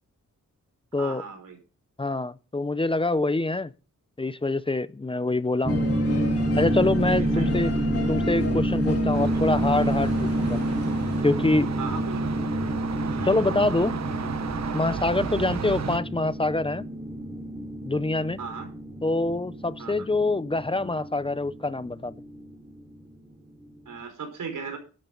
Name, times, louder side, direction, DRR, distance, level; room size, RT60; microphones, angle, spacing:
voice 1, 0.9-1.6 7.0-7.5 11.8-12.3 15.2-15.4 18.4-18.7 19.8-20.1 23.8-24.8, right 5 dB, 90° right, 5.0 m, -37 dB
voice 2, 2.0-3.7 4.2-5.8 6.6-7.7 8.1-10.6 11.2-11.7 13.2-14.0 14.7-16.8 17.9-18.4 19.0-22.1, left 2 dB, 15° left, 0.6 m, -25 dB
sound 1, 5.6-22.8, right 1 dB, 15° right, 4.3 m, -28 dB
sound 2, 5.7-11.2, left 5 dB, 50° left, 3.1 m, -37 dB
sound 3, 9.1-16.0, right 7 dB, 60° right, 1.1 m, -34 dB
13.0 x 11.5 x 3.8 m
wide cardioid pair, 160°, 31 cm